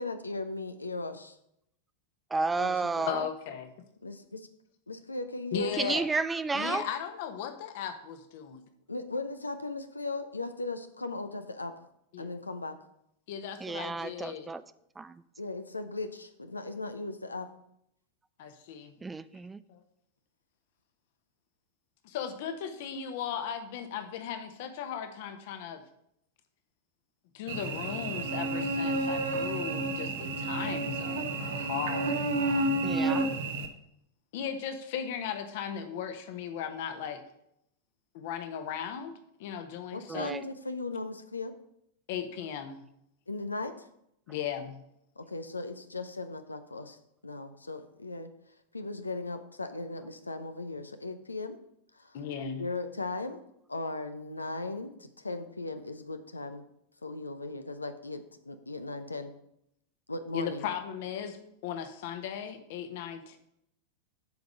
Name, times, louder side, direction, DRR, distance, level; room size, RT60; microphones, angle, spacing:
voice 1, 0.0-1.4 2.6-3.1 4.0-4.5 4.9-6.0 8.9-11.7 12.2-12.8 15.4-17.5 39.9-41.5 43.3-43.9 45.2-47.0 47.2-48.3 48.7-51.6 51.9-52.2 52.6-53.4 53.7-56.6 57.0-59.3 60.1-60.7, left 2 dB, 80° left, 8 dB, 0.6 m, -37 dB
voice 2, 2.3-3.3 5.8-6.8 13.6-14.6 15.0-15.2 19.0-19.6 32.8-33.3 40.1-40.4, right 3 dB, 10° right, 14 dB, 0.3 m, -31 dB
voice 3, 3.1-3.7 5.5-6.1 6.5-8.6 12.1-12.3 13.3-14.5 18.4-19.0 19.7-19.8 22.0-25.8 27.3-32.8 34.3-37.2 38.1-40.3 42.1-42.9 44.3-44.8 52.1-52.6 60.3-63.4, left 8 dB, 50° left, 8 dB, 1.1 m, -37 dB
Cricket / Buzz, 27.5-33.7, right 2 dB, 60° right, 1.0 m, -30 dB
7.9 x 5.2 x 6.5 m, 0.76 s
figure-of-eight pair, 90°, 0 cm